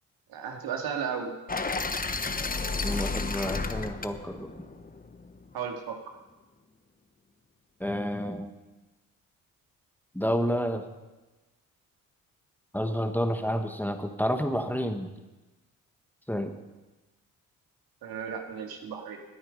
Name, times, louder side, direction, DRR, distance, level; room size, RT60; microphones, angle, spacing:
voice 1, 0.3-1.3 5.5-6.0 18.0-19.2, right 7 dB, 70° right, 3 dB, 2.2 m, -34 dB
sound 1, 1.5-5.5, left 3 dB, 25° left, 1.1 m, -32 dB
voice 2, 2.8-4.6 7.8-8.5 10.1-10.8 12.7-15.1 16.3-16.5, equal, 5° left, 5 dB, 1.6 m, -29 dB
18.0 x 9.7 x 5.3 m, 1.1 s
supercardioid pair, 55°, 37 cm